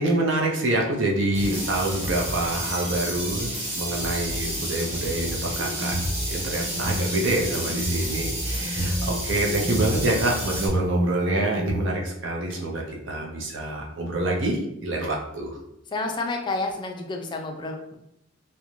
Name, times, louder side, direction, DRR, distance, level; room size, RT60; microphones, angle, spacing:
voice 1, 0.0-5.9 6.3-15.6, right 1 dB, 70° right, 0 dB, 0.5 m, -26 dB
sound 1, 1.3-10.7, right 1 dB, 30° right, 1.0 m, -30 dB
sound 2, 5.6-6.1 6.7-8.1 8.6-9.9 10.5-11.8, right 1 dB, 5° right, 0.7 m, -31 dB
voice 2, 8.5-9.0 15.9-17.9, left 2 dB, 25° left, 3 dB, 0.3 m, -30 dB
2.4 x 2.1 x 3.0 m, 0.77 s
head